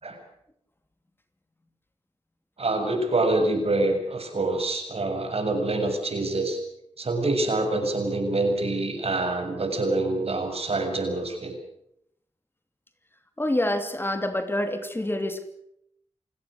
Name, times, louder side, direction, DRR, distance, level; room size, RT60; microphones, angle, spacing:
voice 1, 2.6-6.6 7.0-11.6, right 2 dB, 55° right, 5 dB, 7.1 m, -26 dB
voice 2, 13.4-15.5, left 1 dB, 20° left, 8 dB, 2.8 m, -27 dB
29.0 x 18.0 x 6.5 m, 0.75 s
wide cardioid pair, 80°, 12 cm